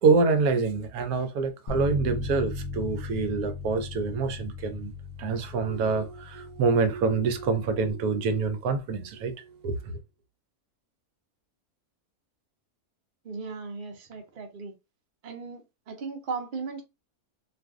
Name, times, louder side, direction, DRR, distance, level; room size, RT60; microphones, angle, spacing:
voice 1, 0.0-4.9 5.2-10.0, right 4 dB, 80° right, 1.0 m, -26 dB
Bass guitar, 1.7-7.9, left 3 dB, 70° left, 0.4 m, -37 dB
voice 2, 13.2-14.7 15.2-16.8, right 4 dB, 50° right, 0.6 m, -37 dB
2.5 x 2.4 x 3.5 m
omnidirectional pair, 1.6 m